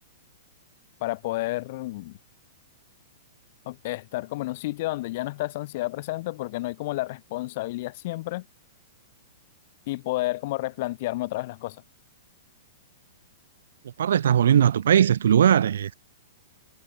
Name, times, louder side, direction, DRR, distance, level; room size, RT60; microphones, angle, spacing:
voice 1, 1.0-2.2 3.6-8.4 9.9-11.8, left 19 dB, 50° left, 4.6 m, -31 dB
voice 2, 14.0-15.9, right 9 dB, 70° right, 1.2 m, -19 dB
figure-of-eight pair, 110°, 0 cm